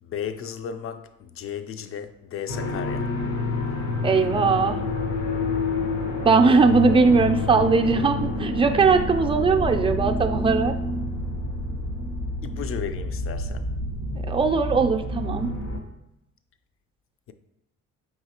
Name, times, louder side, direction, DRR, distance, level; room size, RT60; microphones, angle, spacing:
voice 1, 0.0-3.1 12.4-13.7, left 8 dB, 45° left, 0.4 m, -34 dB
sound 1, 2.5-15.8, left 2 dB, 85° left, 1.0 m, -28 dB
voice 2, 4.0-4.8 6.2-10.8 14.3-15.5, right 4 dB, 20° right, 0.3 m, -20 dB
4.8 x 3.1 x 2.9 m
cardioid pair, 90°, 30 cm